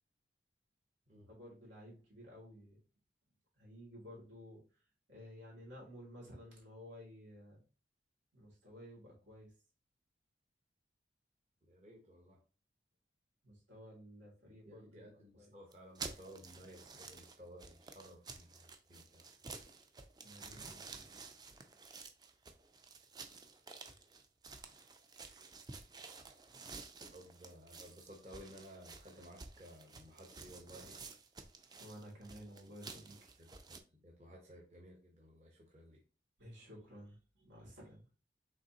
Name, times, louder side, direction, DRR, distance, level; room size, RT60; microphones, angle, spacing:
voice 1, 1.1-2.8 3.6-7.6 8.3-9.5 13.4-15.5 20.2-21.0 31.8-33.3 36.4-38.1, equal, 85° right, -4 dB, 2.5 m, -54 dB
voice 2, 11.7-12.4 14.6-19.2 27.1-31.0 33.4-36.0, equal, 40° right, -1 dB, 0.9 m, -56 dB
sound 1, 15.7-33.8, right 4 dB, 20° right, 0.4 m, -52 dB
5.4 x 3.5 x 2.9 m, 0.35 s
head